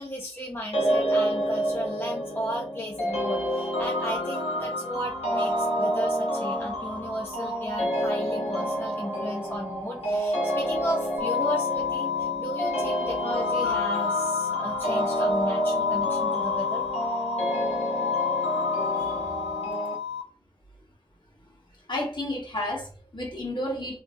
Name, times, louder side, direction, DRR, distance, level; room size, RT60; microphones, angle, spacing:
voice 1, 0.0-16.9 18.9-19.3, equal, 20° left, 0.8 m, -35 dB
sound 1, 0.7-19.9, equal, 85° left, 1.2 m, -28 dB
sound 2, 11.2-20.2, left 8 dB, 85° right, 0.4 m, -30 dB
voice 2, 21.4-24.0, left 1 dB, 45° left, 1.5 m, -32 dB
3.2 x 2.9 x 2.7 m
wide cardioid pair, 40°, 11 cm